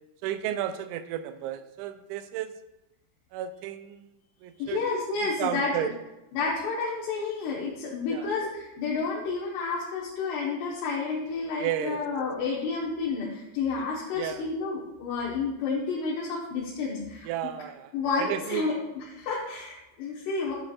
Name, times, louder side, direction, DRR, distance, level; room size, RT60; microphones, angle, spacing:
voice 1, 0.2-2.6 3.3-4.1 4.4-4.8 5.2-5.9 8.1-8.3 11.6-12.0 13.8-13.9 14.1-14.5 17.2-17.9 18.2-18.6, right 11 dB, 90° right, 10 dB, 2.9 m, -33 dB
voice 2, 4.6-5.9 6.3-17.3 17.9-20.5, left 4 dB, 70° left, -5 dB, 3.1 m, -30 dB
12.5 x 7.7 x 2.4 m, 0.96 s
omnidirectional pair, 5.2 m